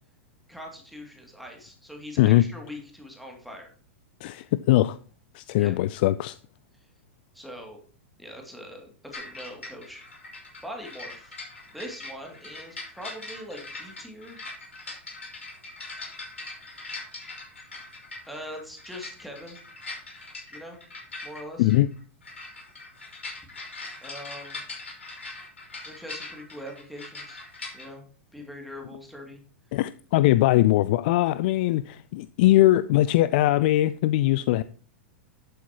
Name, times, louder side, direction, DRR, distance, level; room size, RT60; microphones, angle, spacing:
voice 1, 0.5-3.7 5.6-5.8 7.3-7.8 8.2-10.1 10.6-11.4 11.7-14.4 17.6-17.7 18.3-19.6 20.5-20.8 21.2-21.7 24.0-24.6 25.8-27.4 27.7-28.0 28.3-29.4, equal, ahead, 2.6 m, -42 dB
voice 2, 4.2-5.0 5.3-6.4 21.6-21.9 29.7-34.6, left 15 dB, 50° left, 0.4 m, -21 dB
sound 1, 9.1-27.9, left 3 dB, 75° left, 5.4 m, -41 dB
11.5 x 8.3 x 3.0 m
figure-of-eight pair, 100°, 7 cm